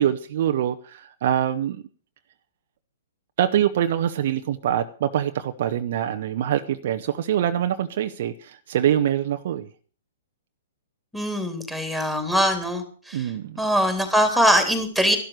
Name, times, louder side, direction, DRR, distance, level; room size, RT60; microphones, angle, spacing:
voice 1, 0.0-1.8 3.4-9.7 13.1-13.6, right 10 dB, 50° right, 0.8 m, -24 dB
voice 2, 11.1-13.3 13.6-15.2, equal, ahead, 3.2 m, -22 dB
13.0 x 12.0 x 6.5 m
figure-of-eight pair, 115°, 0 cm